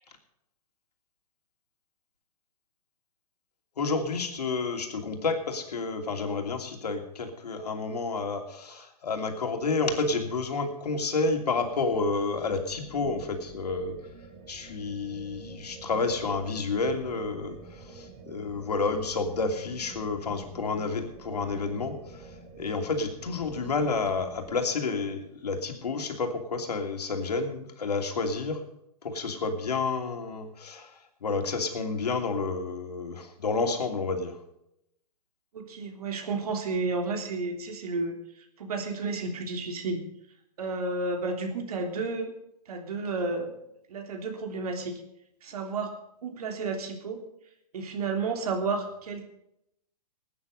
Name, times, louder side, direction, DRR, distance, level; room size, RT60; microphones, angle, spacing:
voice 1, 3.8-14.0 14.5-28.6 29.0-30.9 31.2-34.4, left 4 dB, 75° left, 4 dB, 2.9 m, -30 dB
sound 1, 11.7-24.6, right 4 dB, 30° right, 3.8 m, -48 dB
voice 2, 35.5-40.0 40.6-42.3 42.7-43.5 43.9-45.0 45.4-45.9 46.2-47.2 47.7-49.2, right 3 dB, 70° right, 4 dB, 3.3 m, -32 dB
18.5 x 9.5 x 5.4 m, 0.79 s
hypercardioid pair, 120°, 20 cm